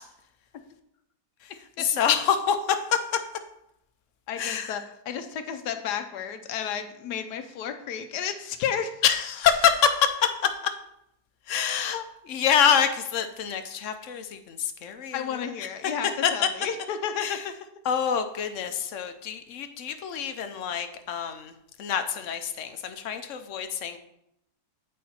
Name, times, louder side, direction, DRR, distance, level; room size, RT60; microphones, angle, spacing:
voice 1, 1.8-2.6 4.4-4.7 9.0-10.1 10.4-10.5 11.5-15.2 16.2-16.3 17.2-17.4 17.8-21.5 21.8-24.0, left 8 dB, 60° left, 8 dB, 0.9 m, -26 dB
voice 2, 4.3-8.9 15.1-17.5, left 8 dB, 85° left, 8 dB, 1.3 m, -32 dB
8.5 x 4.7 x 4.3 m, 0.78 s
omnidirectional pair, 1.7 m